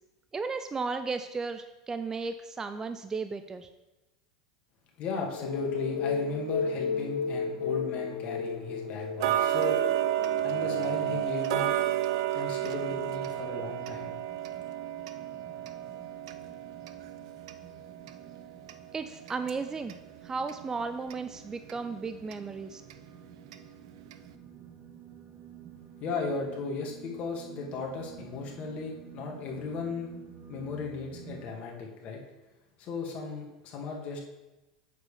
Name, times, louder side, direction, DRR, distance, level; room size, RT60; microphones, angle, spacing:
voice 1, 0.3-3.7 18.9-19.9 20.2-22.8, right 4 dB, 20° right, 9 dB, 0.5 m, -34 dB
voice 2, 5.0-9.8 10.4-11.8 12.3-14.2 26.0-30.1 30.5-32.2 32.8-34.2, left 4 dB, 45° left, 0 dB, 1.9 m, -36 dB
sound 1, 5.3-11.2, left 5 dB, 80° left, 2.5 m, -34 dB
Tick-tock, 9.2-20.0 20.5-20.6 21.1-21.2 21.7-21.8 22.3-22.4 22.9-23.0 23.5-23.6 24.1-24.2, right 13 dB, 65° right, 0.5 m, -31 dB
sound 2, 12.6-31.5, right 8 dB, 40° right, 1.2 m, -51 dB
7.9 x 6.9 x 3.5 m, 1.0 s
hypercardioid pair, 85°, 3 cm